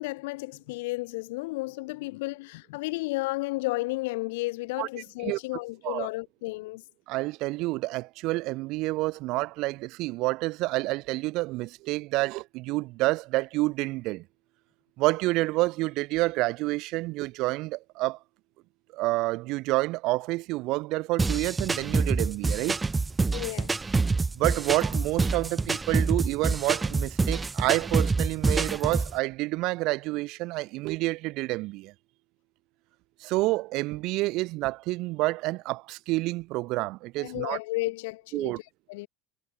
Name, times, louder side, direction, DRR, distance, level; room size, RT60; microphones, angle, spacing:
voice 1, 0.0-6.8 23.3-23.7 37.2-38.5 38.9-39.1, left 22 dB, 85° left, 7.4 m, -33 dB
voice 2, 7.1-14.2 15.0-18.2 18.9-22.8 24.4-31.9 33.2-37.6 38.3-38.6, right 21 dB, 60° right, 2.3 m, -28 dB
sound 1, 21.2-29.1, right 3 dB, 15° right, 1.6 m, -26 dB
supercardioid pair, 135°, 0 cm